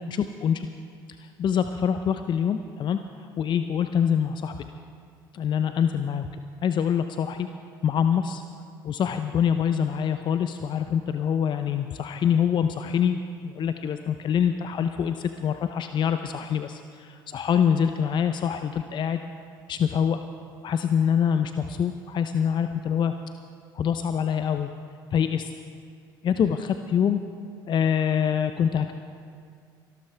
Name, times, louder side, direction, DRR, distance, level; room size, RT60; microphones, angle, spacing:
voice 1, 1.2-4.5 5.3-6.3 6.6-7.5 7.8-8.4 8.8-19.2 19.7-20.2 20.6-23.1 23.7-24.7 25.1-25.5 26.2-27.2 27.7-28.9, left 8 dB, 40° left, 8 dB, 0.6 m, -25 dB
22.5 x 12.5 x 3.4 m, 2.3 s
hypercardioid pair, 60°, 11 cm